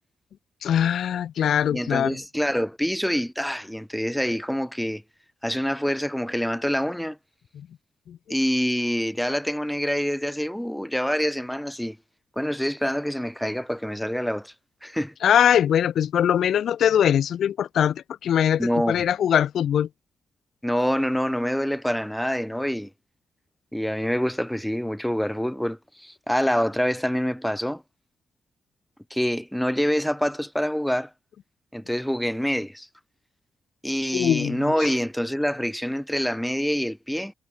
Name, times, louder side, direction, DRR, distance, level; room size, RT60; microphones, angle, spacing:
voice 1, 0.6-2.2 7.5-7.7 8.1-8.2 15.2-19.9 34.1-34.7, left 9 dB, 80° left, 1.4 m, -22 dB
voice 2, 1.7-5.0 5.4-7.2 8.3-12.0 12.4-14.5 14.8-15.1 18.6-19.0 20.6-22.9 23.7-27.8 29.1-31.1 31.7-32.9 33.8-37.3, equal, ahead, 1.8 m, -26 dB
wide cardioid pair, 140°, 0 cm